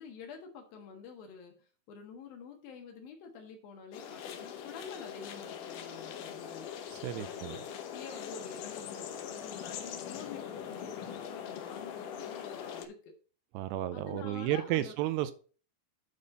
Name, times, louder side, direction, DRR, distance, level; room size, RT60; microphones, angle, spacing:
voice 1, 0.0-6.7 7.1-13.0 13.9-14.9, left 5 dB, 65° left, 2.8 m, -48 dB
sound 1, 3.9-12.9, left 8 dB, 85° left, 1.8 m, -42 dB
voice 2, 6.9-7.6 13.5-15.3, right 14 dB, 85° right, 2.7 m, -32 dB
9.7 x 4.3 x 5.4 m
omnidirectional pair, 5.0 m